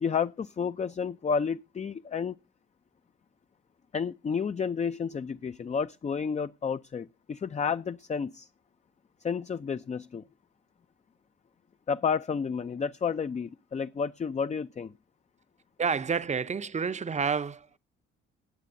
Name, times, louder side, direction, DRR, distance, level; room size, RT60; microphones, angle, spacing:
voice 1, 0.0-2.3 3.9-8.5 9.2-10.2 11.9-14.9, left 6 dB, 20° left, 0.5 m, -31 dB
voice 2, 15.8-17.8, right 6 dB, 20° right, 0.7 m, -29 dB
18.5 x 8.2 x 2.6 m
hypercardioid pair, 50°, 31 cm